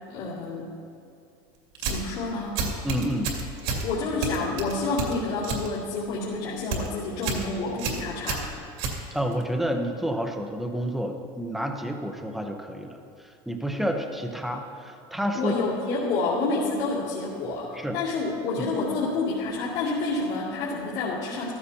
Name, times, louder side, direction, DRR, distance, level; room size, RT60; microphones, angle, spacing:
voice 1, 0.1-0.7 1.9-2.6 3.8-8.4 15.3-21.5, left 3 dB, 55° left, -9 dB, 2.5 m, -29 dB
sound 1, 1.7-2.1 2.6-3.9 4.2-5.7 6.0-6.3 6.6-6.9 7.2-7.5 7.8-9.4, right 5 dB, 65° right, 2.3 m, -30 dB
voice 2, 2.8-3.3 9.1-15.7 17.7-18.0 18.6-18.7, equal, ahead, 3 dB, 0.7 m, -29 dB
14.5 x 14.0 x 2.8 m, 2.6 s
cardioid pair, 170°, 13 cm